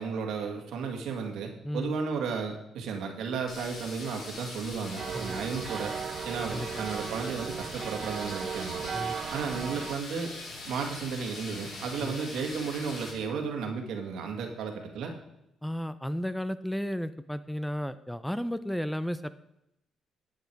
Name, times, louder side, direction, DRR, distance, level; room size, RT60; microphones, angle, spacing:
voice 1, 0.0-5.9 6.2-8.8 9.3-10.3 10.7-15.1, right 5 dB, 80° right, 3 dB, 2.0 m, -34 dB
voice 2, 1.6-2.0 5.1-5.4 6.5-6.9 8.9-9.2 9.6-9.7 12.0-12.2 15.6-19.3, equal, 5° left, 13 dB, 0.5 m, -33 dB
sound 1, 3.5-13.1, left 2 dB, 70° left, 4.3 m, -42 dB
sound 2, 5.0-10.0, right 7 dB, 55° right, 0.3 m, -36 dB
10.5 x 8.1 x 4.7 m, 0.84 s
cardioid pair, 90°, 0 cm